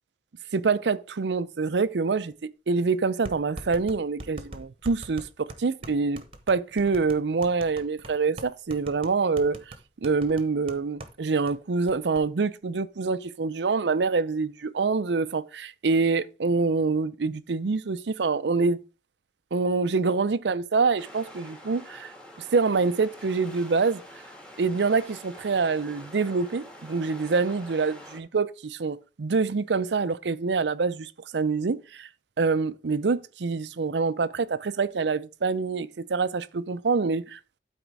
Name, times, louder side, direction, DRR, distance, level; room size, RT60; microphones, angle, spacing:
voice 1, 0.5-9.7 10.0-18.8 19.5-22.1 22.5-24.0 24.6-32.1 32.4-37.4, right 4 dB, 80° right, 0.5 m, -26 dB
sound 1, 2.3-2.4 3.2-11.2 11.5-11.6 11.9-12.2, right 1 dB, 30° right, 1.1 m, -42 dB
sound 2, 21.0-28.2, equal, 5° left, 1.6 m, -46 dB
12.0 x 4.5 x 4.7 m
head